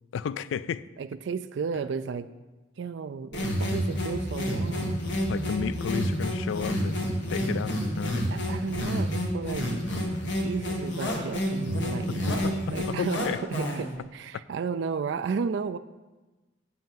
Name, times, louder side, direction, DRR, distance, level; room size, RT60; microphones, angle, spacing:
voice 1, 0.1-0.9 5.3-7.0 7.3-8.2 12.3-12.5 12.8-13.4, left 7 dB, 80° left, 17 dB, 0.3 m, -32 dB
voice 2, 1.0-2.3 2.8-5.0 8.3-9.7 10.2-15.8, right 5 dB, 65° right, 11 dB, 0.3 m, -33 dB
sound 1, 3.3-14.0, equal, 65° left, 1.6 m, -29 dB
7.6 x 5.7 x 7.2 m, 1.2 s
head